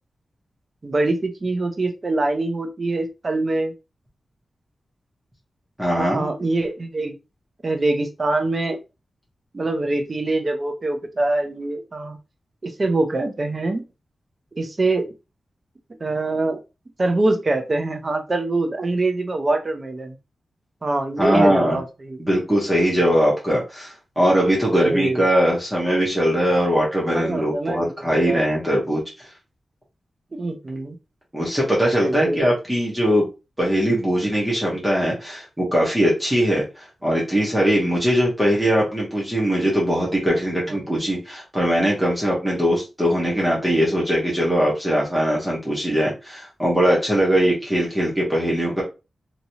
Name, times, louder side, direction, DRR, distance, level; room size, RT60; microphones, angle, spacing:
voice 1, 0.8-3.7 5.9-7.1 7.6-8.8 9.5-12.2 12.6-13.8 14.6-15.1 16.0-16.6 17.0-20.2 20.8-22.2 24.8-25.3 27.1-28.5 30.3-31.0 32.0-32.4 40.7-41.0, right 2 dB, 35° right, 6 dB, 0.6 m, -24 dB
voice 2, 5.8-6.3 21.2-21.8 22.2-29.3 31.3-33.3 33.6-48.8, equal, 5° right, -4 dB, 1.0 m, -21 dB
2.9 x 2.8 x 2.7 m, 0.28 s
wide cardioid pair, 135°, 0 cm